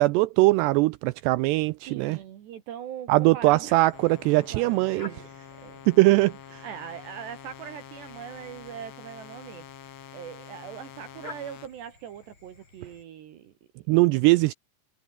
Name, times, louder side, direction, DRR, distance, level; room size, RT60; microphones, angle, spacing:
voice 1, 0.0-2.2 3.1-5.1 5.9-6.6 13.9-14.5, right 20 dB, 85° right, 2.4 m, -21 dB
voice 2, 1.9-3.8 4.3-5.2 5.6-5.8 6.6-9.7 10.1-14.5, right 9 dB, 70° right, 4.0 m, -41 dB
sound 1, 3.5-13.0, left 3 dB, 25° left, 5.0 m, -52 dB
sound 2, 3.9-11.7, left 9 dB, 65° left, 4.6 m, -46 dB
omnidirectional pair, 5.4 m